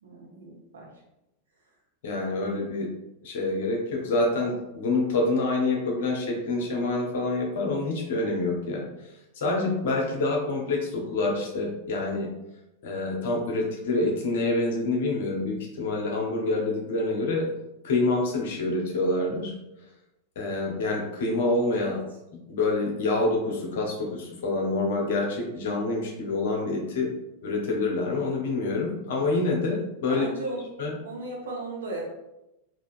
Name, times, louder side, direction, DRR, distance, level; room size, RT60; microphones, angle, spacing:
voice 1, 0.0-0.9 21.7-22.0 30.1-30.6 31.0-32.1, right 2 dB, 65° right, -3 dB, 0.9 m, -36 dB
voice 2, 2.0-2.9 3.2-8.8 9.4-12.3 12.8-17.5 17.8-19.5 20.4-21.9 22.5-27.1 27.4-30.3 30.8-30.9, left 2 dB, 55° left, 0 dB, 0.8 m, -27 dB
3.6 x 2.5 x 2.5 m, 0.92 s
figure-of-eight pair, 90°, 0 cm